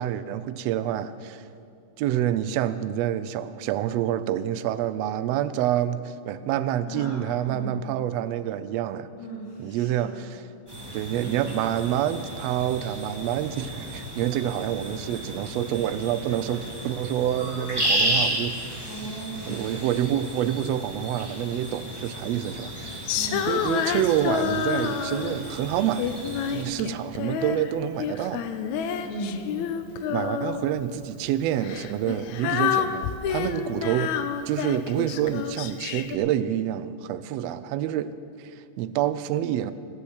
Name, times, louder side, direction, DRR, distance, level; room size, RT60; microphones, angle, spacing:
voice 1, 0.0-1.5 2.0-9.1 9.6-10.5 10.9-18.6 19.5-23.1 23.5-26.2 26.5-28.4 30.1-34.2 34.5-39.7, right 11 dB, 80° right, 12 dB, 1.5 m, -27 dB
voice 2, 9.2-10.2 18.8-19.6 23.1-23.5 26.6-26.9 29.0-29.4 29.9-30.1, right 1 dB, 35° left, -6 dB, 3.3 m, -37 dB
sound 1, 10.7-26.6, right 1 dB, 10° right, 2.0 m, -33 dB
Female singing, 23.1-25.5 26.0-27.7 28.0-30.8 31.6-36.2, left 8 dB, 85° left, 2.0 m, -29 dB
13.5 x 8.5 x 8.0 m, 2.5 s
omnidirectional pair, 3.4 m